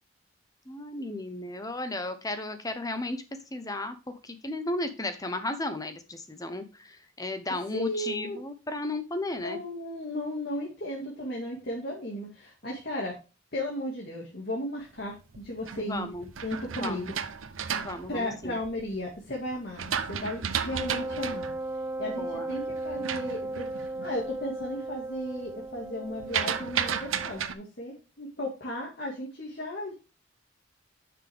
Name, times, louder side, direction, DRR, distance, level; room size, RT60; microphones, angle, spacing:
voice 1, 0.7-3.2 3.5-9.6 15.9-16.3 16.8-17.1 17.8-18.6 22.2-22.5, left 2 dB, 20° left, 9 dB, 0.9 m, -34 dB
voice 2, 7.7-8.4 9.4-13.2 13.5-16.1 16.4-17.0 18.1-21.5 22.0-29.9, left 1 dB, 55° left, -3 dB, 2.1 m, -35 dB
sound 1, 15.1-19.0 19.5-24.3 24.6-25.1 25.3-27.5, right 7 dB, 85° right, 0.8 m, -33 dB
Wind instrument woodwind instrument, 20.7-27.4, right 2 dB, 10° right, 0.3 m, -36 dB
9.6 x 6.0 x 3.5 m, 0.32 s
head